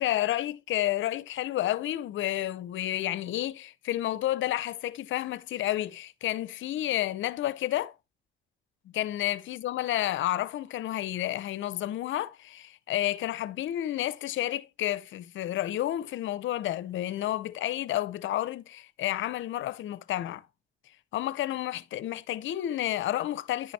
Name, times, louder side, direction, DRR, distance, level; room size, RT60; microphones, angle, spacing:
voice 1, 0.0-7.9 8.9-20.4 21.1-23.7, left 13 dB, 75° left, 0.7 m, -30 dB
10.5 x 5.7 x 3.2 m
cardioid pair, 90°, 20 cm